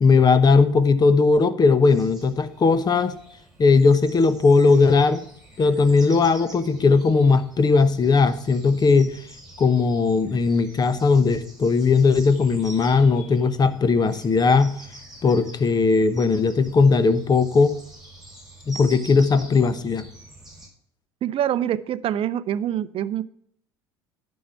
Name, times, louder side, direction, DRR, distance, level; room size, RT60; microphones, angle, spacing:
voice 1, 0.0-3.1 3.6-5.2 5.6-9.2 9.6-14.8 15.2-17.7 18.7-20.0, left 4 dB, 30° left, 1.0 m, -18 dB
sound 1, 1.9-20.7, right 1 dB, 5° right, 4.9 m, -46 dB
voice 2, 21.2-23.2, right 11 dB, 45° right, 0.6 m, -25 dB
11.0 x 5.5 x 5.7 m
hypercardioid pair, 70°, 13 cm